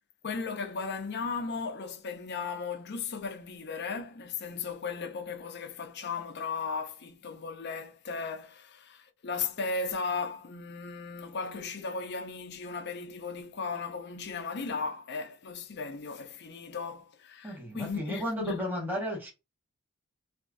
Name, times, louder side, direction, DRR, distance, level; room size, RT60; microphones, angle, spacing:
voice 1, 0.2-18.6, left 4 dB, 55° left, 0.6 m, -36 dB
voice 2, 17.4-19.3, equal, 10° right, 1.5 m, -33 dB
3.3 x 2.8 x 2.5 m
head